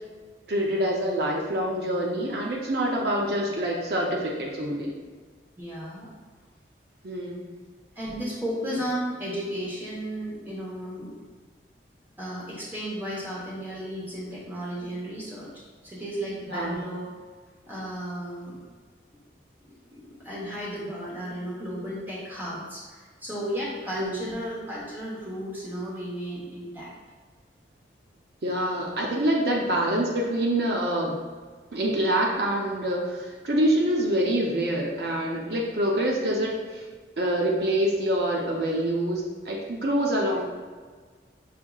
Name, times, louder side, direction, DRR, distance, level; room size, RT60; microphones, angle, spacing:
voice 1, 0.5-4.9 7.0-7.5 16.5-16.8 23.9-24.3 28.4-31.2 31.7-36.8 37.2-40.4, right 1 dB, 65° right, -2 dB, 0.5 m, -26 dB
voice 2, 5.6-6.1 8.0-11.1 12.2-17.1 17.7-18.6 19.6-26.9, equal, 10° right, -6 dB, 0.9 m, -34 dB
5.7 x 2.7 x 2.3 m, 1.5 s
head